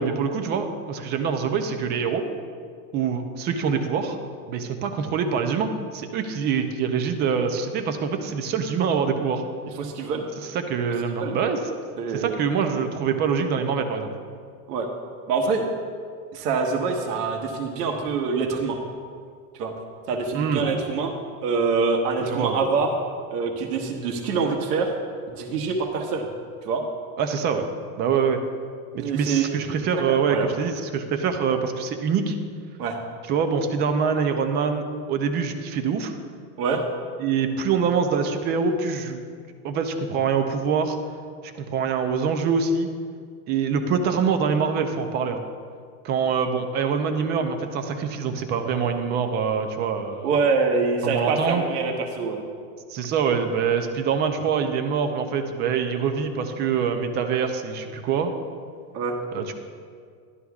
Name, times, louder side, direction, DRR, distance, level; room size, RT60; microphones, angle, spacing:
voice 1, 0.0-2.3 2.9-4.2 4.5-9.4 10.4-11.7 12.1-14.1 20.3-20.6 22.2-22.6 27.2-27.7 28.0-28.4 28.9-32.4 33.3-36.2 37.2-39.2 39.6-41.0 41.4-42.9 43.5-45.4 46.0-50.3 51.0-51.6 52.9-58.3 59.3-59.5, right 6 dB, 25° right, 6 dB, 0.4 m, -25 dB
voice 2, 9.8-10.3 11.2-11.4 12.0-12.4 14.7-14.9 15.3-15.7 16.3-18.8 19.5-19.7 20.1-21.1 21.4-22.9 23.3-24.9 25.3-26.3 26.6-26.8 28.9-29.5 30.1-30.5 32.8-33.0 36.6-36.8 50.2-52.4 58.9-59.2, right 4 dB, 85° right, 2 dB, 1.3 m, -25 dB
12.5 x 11.0 x 2.4 m, 2.1 s
supercardioid pair, 145°, 47 cm